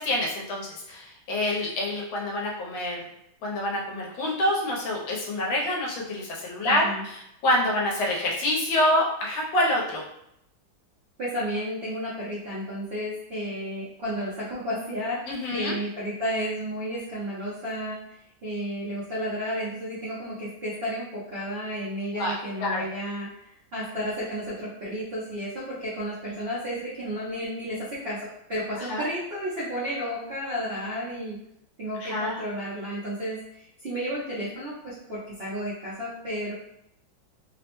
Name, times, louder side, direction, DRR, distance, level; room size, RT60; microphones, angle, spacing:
voice 1, 0.0-3.1 3.4-7.2 7.4-10.0 15.3-15.7 22.1-22.3 22.6-22.8 28.9-29.1 32.0-32.4, left 1 dB, 80° left, -2 dB, 1.5 m, -26 dB
voice 2, 6.6-7.0 11.2-15.2 15.5-23.4 23.7-31.4 31.8-36.5, equal, 65° right, -9 dB, 0.5 m, -32 dB
3.5 x 2.1 x 2.9 m, 0.78 s
omnidirectional pair, 2.2 m